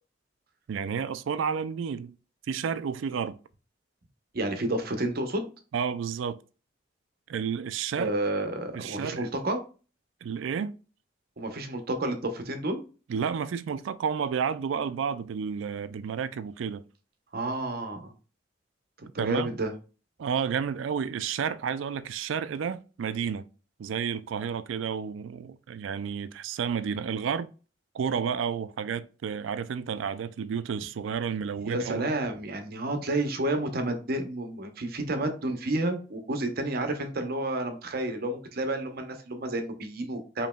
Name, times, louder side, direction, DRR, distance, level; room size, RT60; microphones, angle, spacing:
voice 1, 0.7-2.1 2.5-3.4 5.7-6.4 7.3-8.1 8.7-9.3 10.2-10.7 13.1-16.8 19.2-19.5 20.2-23.5 23.8-27.5 27.9-32.1, right 7 dB, 85° right, 0.3 m, -31 dB
voice 2, 4.3-5.5 8.0-9.6 11.4-12.8 17.3-18.1 19.0-19.7 31.6-40.5, right 1 dB, 55° right, 0.8 m, -30 dB
5.1 x 2.9 x 2.2 m
head